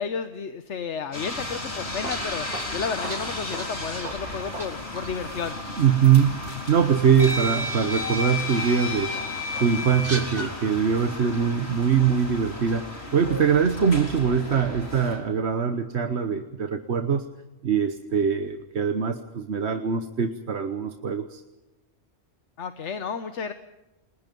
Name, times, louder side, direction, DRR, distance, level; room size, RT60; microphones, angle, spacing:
voice 1, 0.0-5.6 22.6-23.5, left 6 dB, 85° left, 9 dB, 1.4 m, -32 dB
sound 1, 1.1-15.2, left 1 dB, 65° left, 4.5 m, -35 dB
sound 2, 1.9-4.7 4.9-5.1 6.3-6.4 7.2-10.5, left 1 dB, 35° right, 3.2 m, -32 dB
voice 2, 5.8-9.1 9.6-17.3 17.6-21.4, right 7 dB, 70° right, 8 dB, 1.4 m, -23 dB
29.5 x 21.0 x 5.3 m, 1.1 s
omnidirectional pair, 1.2 m